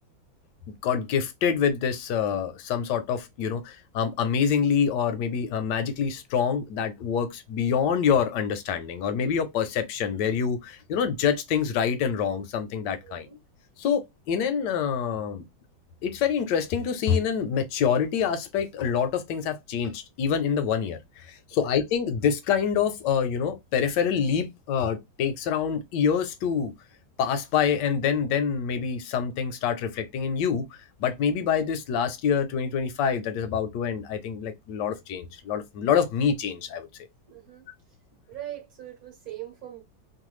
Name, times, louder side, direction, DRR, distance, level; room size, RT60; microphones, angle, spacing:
voice 1, 0.8-13.3 13.8-15.4 16.0-26.7 27.2-30.6 31.0-36.9, left 7 dB, 75° left, 1.1 m, -26 dB
voice 2, 13.0-13.4 21.5-21.8 37.3-37.6 38.3-39.8, right 12 dB, 60° right, 1.1 m, -41 dB
3.1 x 2.2 x 3.0 m
omnidirectional pair, 2.1 m